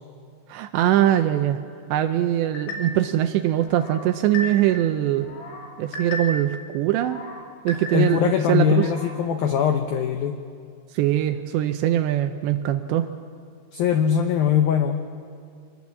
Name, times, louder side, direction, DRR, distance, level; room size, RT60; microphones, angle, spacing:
voice 1, 0.5-1.6 1.9-5.3 5.8-7.2 7.6-8.9 10.9-13.1, right 12 dB, 80° right, 8 dB, 2.6 m, -22 dB
sound 1, 2.5-3.1 3.6-4.8 5.2-6.5 7.0-8.3 8.7-9.2, left 1 dB, 70° left, 5.0 m, -35 dB
voice 2, 7.9-10.4 13.7-15.1, left 8 dB, 85° left, 6 dB, 2.1 m, -21 dB
27.0 x 20.5 x 7.2 m, 2.3 s
omnidirectional pair, 5.6 m